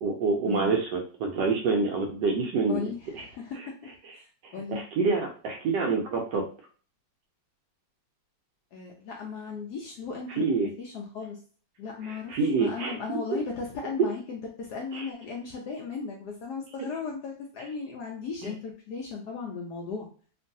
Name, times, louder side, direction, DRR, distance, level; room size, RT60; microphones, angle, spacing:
voice 1, 0.0-2.8 3.1-3.2 4.4-6.5 10.3-10.7 12.0-13.2 14.9-15.1 18.4-18.5, right 4 dB, 75° right, 1 dB, 1.0 m, -27 dB
voice 2, 2.7-4.8 8.7-11.4 11.8-20.1, left 5 dB, 75° left, -1 dB, 0.9 m, -37 dB
3.0 x 2.6 x 2.6 m, 0.41 s
omnidirectional pair, 2.2 m